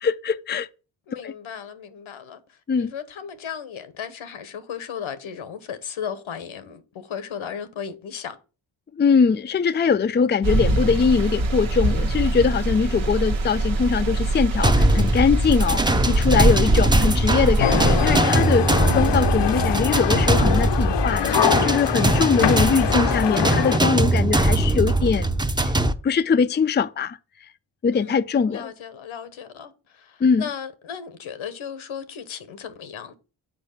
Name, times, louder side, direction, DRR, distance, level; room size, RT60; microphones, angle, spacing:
voice 1, 0.0-0.7 1.2-1.3 2.7-2.9 9.0-25.3 25.6-25.7 26.0-27.2 27.8-28.7 30.2-30.4, left 5 dB, 25° left, 0.5 m, -22 dB
voice 2, 1.1-2.4 2.8-8.4 27.9-28.2 28.5-33.1, left 7 dB, 80° left, 1.2 m, -35 dB
sound 1, 10.4-18.2, right 2 dB, 75° right, 1.4 m, -22 dB
sound 2, 14.6-25.9, right 1 dB, 10° right, 0.7 m, -21 dB
sound 3, 17.6-23.8, left 9 dB, 60° left, 0.8 m, -24 dB
7.1 x 4.8 x 5.7 m
cardioid pair, 50°, 47 cm